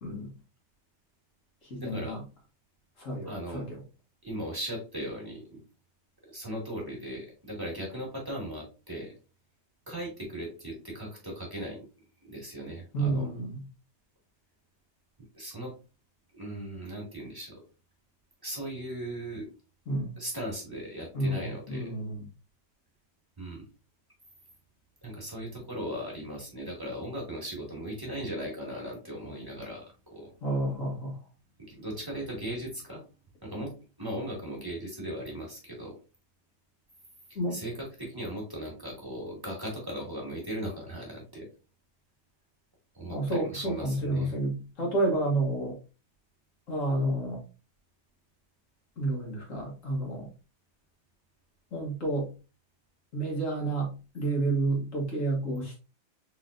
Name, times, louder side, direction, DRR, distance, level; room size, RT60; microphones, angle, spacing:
voice 1, 0.0-0.3 1.6-2.2 3.0-3.8 12.9-13.6 19.9-20.2 21.1-22.3 30.4-31.2 37.3-37.6 43.1-45.8 46.7-47.4 49.0-50.3 51.7-52.3 53.1-55.8, right 2 dB, 45° left, 0 dB, 1.3 m, -30 dB
voice 2, 1.8-2.2 3.3-3.7 4.2-5.6 6.3-9.1 9.9-11.8 12.2-13.3 15.2-15.7 16.3-17.6 18.4-19.5 20.2-21.9 23.4-23.6 25.0-30.3 31.6-33.0 33.4-33.7 34.0-35.9 37.5-41.5 42.9-44.3, equal, 10° right, -2 dB, 1.5 m, -38 dB
3.9 x 3.8 x 2.4 m, 0.31 s
omnidirectional pair, 2.3 m